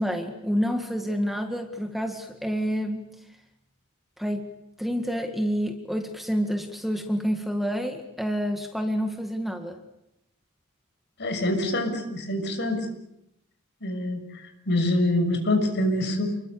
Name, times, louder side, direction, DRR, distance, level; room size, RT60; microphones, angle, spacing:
voice 1, 0.0-3.1 4.2-4.5 4.8-9.8, equal, ahead, 4 dB, 1.9 m, -28 dB
voice 2, 11.2-12.9 13.8-16.3, left 1 dB, 55° left, 6 dB, 6.7 m, -25 dB
29.5 x 22.0 x 8.6 m, 0.84 s
head